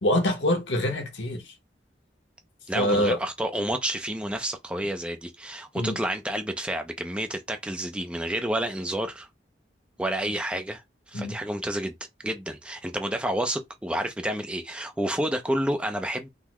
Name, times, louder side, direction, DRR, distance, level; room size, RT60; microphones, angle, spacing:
voice 1, 0.0-1.5 2.7-3.2 5.7-6.0 11.1-11.4, left 1 dB, 85° left, 1.0 m, -25 dB
voice 2, 2.7-9.3 10.0-10.8 11.1-11.9 12.2-16.3, right 1 dB, 5° right, 0.4 m, -29 dB
3.7 x 2.1 x 2.9 m
head